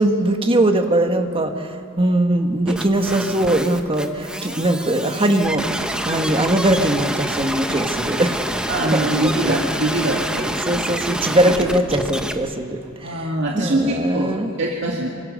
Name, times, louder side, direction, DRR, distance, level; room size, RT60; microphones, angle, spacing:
voice 1, 0.0-8.4 8.9-9.6 10.7-14.5, right 1 dB, 25° right, 5 dB, 1.5 m, -21 dB
sound 1, 2.7-12.3, right 1 dB, 5° right, 1.1 m, -27 dB
voice 2, 8.7-10.5 13.0-14.3 14.6-15.1, right 1 dB, 60° right, -2 dB, 2.2 m, -22 dB
25.5 x 25.0 x 6.6 m, 2.5 s
head